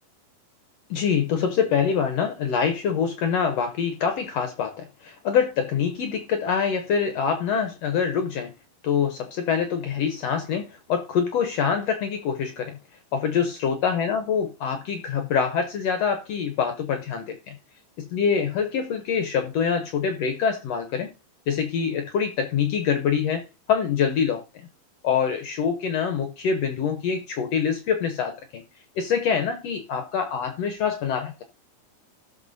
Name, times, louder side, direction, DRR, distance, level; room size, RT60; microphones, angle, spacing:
voice 1, 0.9-8.5 8.8-12.8 13.1-17.6 18.0-21.1 21.5-24.7 25.0-28.6 29.0-31.4, left 7 dB, 75° left, 1.5 m, -25 dB
17.0 x 6.2 x 2.6 m
omnidirectional pair, 3.9 m